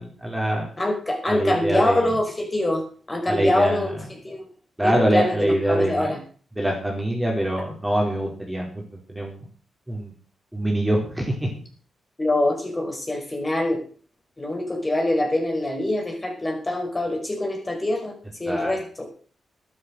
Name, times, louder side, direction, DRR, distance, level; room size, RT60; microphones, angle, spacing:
voice 1, 0.0-0.7 1.3-2.1 3.3-3.9 4.8-6.1 6.6-8.7 9.1-9.5 9.9-10.1 10.5-11.5 18.5-18.8, right 1 dB, 5° right, -1 dB, 4.6 m, -24 dB
voice 2, 0.8-3.9 4.2-4.4 4.8-6.2 12.2-13.8 14.4-18.1 18.4-19.1, left 1 dB, 20° left, 2 dB, 5.2 m, -24 dB
12.0 x 11.0 x 6.4 m, 0.42 s
cardioid pair, 100°, 0 cm